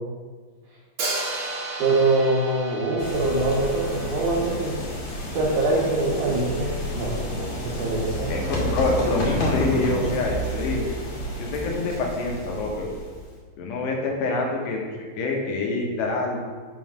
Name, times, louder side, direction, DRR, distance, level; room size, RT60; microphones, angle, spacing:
Hi-hat, 1.0-4.9, right 2 dB, 50° right, 1.6 m, -33 dB
voice 1, 1.8-4.8 5.3-8.3, right 2 dB, 90° right, -5 dB, 1.7 m, -24 dB
sound 1, 3.0-13.3, equal, 50° left, 3.0 m, -30 dB
voice 2, 8.3-10.8 11.4-12.9 13.6-14.9 15.2-16.4, left 3 dB, 80° left, 0 dB, 3.1 m, -26 dB
6.8 x 3.8 x 6.3 m, 1.5 s
omnidirectional pair, 5.0 m